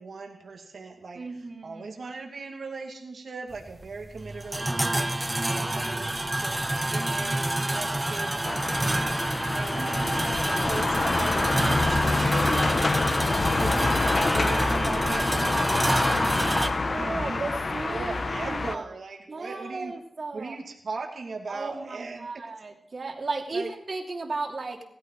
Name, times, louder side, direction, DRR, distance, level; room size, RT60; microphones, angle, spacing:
voice 1, 0.0-1.2 1.6-10.0 10.4-17.6 17.9-19.9 20.3-22.4 23.5-23.7, right 4 dB, 75° right, 2 dB, 2.4 m, -39 dB
voice 2, 1.1-1.9 5.4-5.8 9.8-10.5 16.9-18.8 19.3-20.6 21.5-24.8, right 3 dB, 55° right, 2 dB, 2.9 m, -35 dB
sound 1, 3.5-16.7, right 1 dB, 20° right, 1.1 m, -28 dB
sound 2, 8.4-18.7, left 3 dB, 55° left, 1.1 m, -26 dB
16.5 x 14.0 x 4.8 m, 0.74 s
cardioid pair, 55°, 0 cm